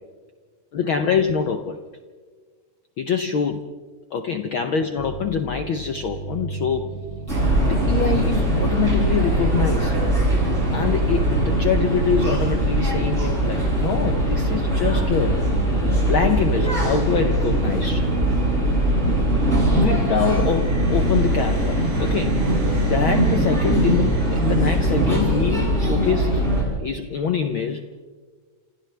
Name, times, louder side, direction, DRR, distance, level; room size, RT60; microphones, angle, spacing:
voice 1, 0.7-1.8 3.0-3.6 4.1-6.9 7.3-10.0 10.7-15.4 16.0-18.1 19.6-26.5 26.8-28.0, left 7 dB, 70° left, 7 dB, 1.2 m, -25 dB
sound 1, 4.9-19.5, right 2 dB, 45° right, 4.6 m, -37 dB
sound 2, 7.3-26.6, right 1 dB, 20° right, 8.2 m, -21 dB
sound 3, 20.1-25.8, right 2 dB, 75° right, 6.9 m, -40 dB
28.0 x 28.0 x 3.4 m, 1.5 s
omnidirectional pair, 3.5 m